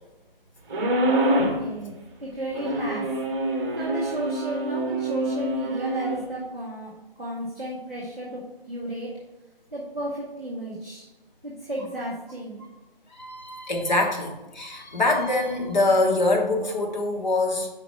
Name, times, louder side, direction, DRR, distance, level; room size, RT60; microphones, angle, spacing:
sound 1, 0.7-1.6 2.5-6.2, right 1 dB, 20° right, 1.0 m, -26 dB
voice 1, 1.5-1.9 2.2-3.0 3.7-6.9 7.2-8.4 8.7-9.1 9.7-11.0 11.4-12.6, right 1 dB, 5° left, -17 dB, 0.5 m, -33 dB
voice 2, 13.1-17.7, left 2 dB, 50° left, 1 dB, 1.3 m, -24 dB
5.8 x 5.0 x 4.8 m, 1.1 s
figure-of-eight pair, 145°, 29 cm